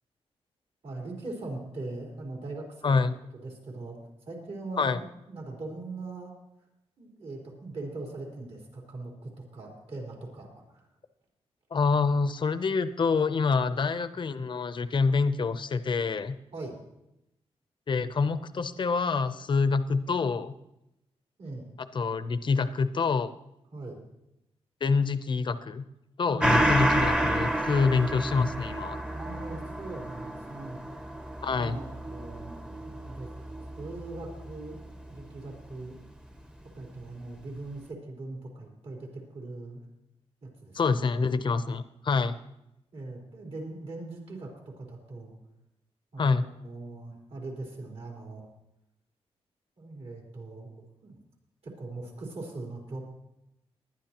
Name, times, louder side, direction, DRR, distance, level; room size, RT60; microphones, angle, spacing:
voice 1, 0.8-3.0 3.3-4.0 4.3-6.3 7.0-10.9 16.5-16.8 21.4-21.7 23.7-24.0 26.3-26.8 29.0-30.8 31.6-33.3 33.8-34.8 35.1-36.0 36.7-39.8 40.4-40.8 42.9-45.3 46.1-48.5 49.8-50.7 51.0-51.2 51.6-53.0, right 2 dB, 65° right, -2 dB, 4.1 m, -40 dB
voice 2, 2.8-3.1 4.8-5.0 11.7-16.4 17.9-20.5 21.9-23.3 24.8-25.9 26.2-29.0 31.4-31.8 40.7-42.3 46.2-46.5, left 4 dB, 45° left, 12 dB, 0.7 m, -26 dB
Gong, 26.4-35.4 35.7-35.8, right 1 dB, 5° right, 0.8 m, -30 dB
19.5 x 11.0 x 3.0 m, 0.86 s
wide cardioid pair, 105°, 11 cm